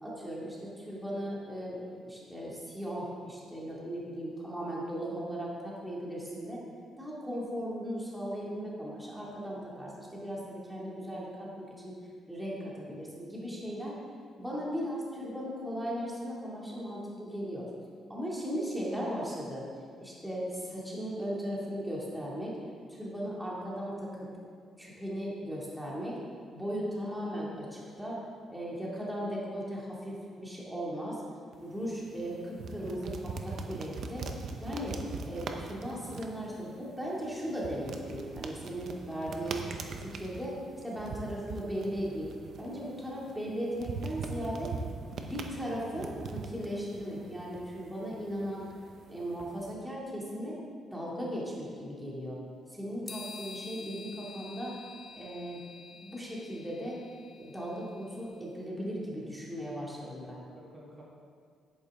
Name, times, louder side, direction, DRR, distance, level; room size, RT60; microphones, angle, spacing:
voice 1, 0.0-6.6 7.0-11.9 12.3-14.0 14.4-17.7 18.1-19.6 20.0-22.5 22.9-24.3 24.8-26.2 26.5-28.2 28.5-31.2 31.6-34.3 34.6-35.0 35.3-39.6 40.0-44.7 45.1-48.7 49.1-50.6 50.9-52.4 52.7-54.8 55.2-55.6 56.0-57.0 57.4-60.4, equal, 5° right, -5 dB, 2.3 m, -37 dB
sound 1, 31.5-49.7, right 4 dB, 60° right, 0.8 m, -42 dB
sound 2, 53.1-58.4, left 4 dB, 35° left, 0.9 m, -48 dB
voice 2, 60.0-61.0, equal, 40° right, -4 dB, 2.3 m, -53 dB
10.5 x 9.0 x 3.6 m, 2.1 s
cardioid pair, 90°, 0 cm